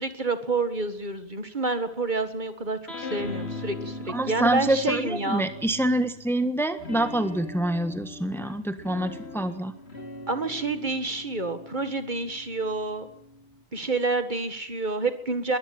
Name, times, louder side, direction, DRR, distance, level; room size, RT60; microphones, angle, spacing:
voice 1, 0.0-5.4 10.3-13.1 13.7-15.6, right 3 dB, 45° right, 10 dB, 1.9 m, -28 dB
sound 1, 2.9-6.2 6.8-13.6, left 2 dB, 65° left, 4.0 m, -40 dB
voice 2, 4.1-9.7, right 1 dB, ahead, 9 dB, 1.4 m, -26 dB
22.0 x 15.5 x 9.0 m, 0.70 s
omnidirectional pair, 1.1 m